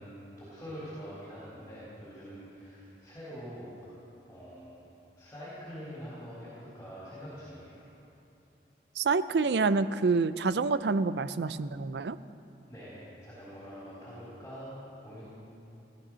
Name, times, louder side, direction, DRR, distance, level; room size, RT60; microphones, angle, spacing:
voice 1, 0.0-4.0 4.3-4.8 5.1-7.9 12.6-14.7 15.0-15.3, equal, 10° left, -9 dB, 3.8 m, -45 dB
voice 2, 9.0-12.2, right 4 dB, 75° right, 14 dB, 0.5 m, -27 dB
16.5 x 11.5 x 6.3 m, 2.9 s
head